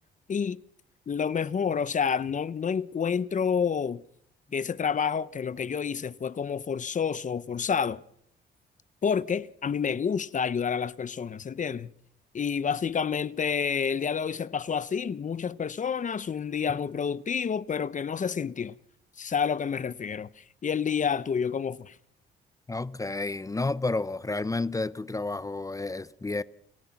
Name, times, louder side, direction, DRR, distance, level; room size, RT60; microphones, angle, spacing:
voice 1, 0.3-0.6 1.1-4.0 4.5-8.0 9.0-11.9 12.3-18.7 19.2-21.9, left 6 dB, 40° left, 1.0 m, -29 dB
voice 2, 22.7-26.4, left 3 dB, 15° left, 0.7 m, -31 dB
29.5 x 15.0 x 6.0 m
cardioid pair, 90°, 20 cm